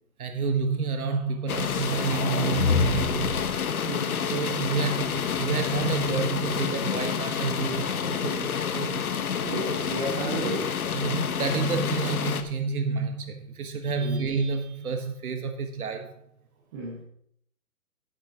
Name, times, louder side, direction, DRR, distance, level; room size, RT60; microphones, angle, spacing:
voice 1, 0.2-3.5 4.3-9.2 10.9-16.2, right 4 dB, 80° right, 5 dB, 1.5 m, -29 dB
sound 1, 1.5-12.4, left 7 dB, 80° left, 1.2 m, -29 dB
sound 2, 1.6-3.6, left 5 dB, 30° left, 1.4 m, -28 dB
voice 2, 3.8-4.2 9.4-10.8 14.0-14.2 16.7-17.0, right 2 dB, 20° right, -5 dB, 1.5 m, -32 dB
11.0 x 11.0 x 3.0 m, 0.68 s
hypercardioid pair, 170°, 43 cm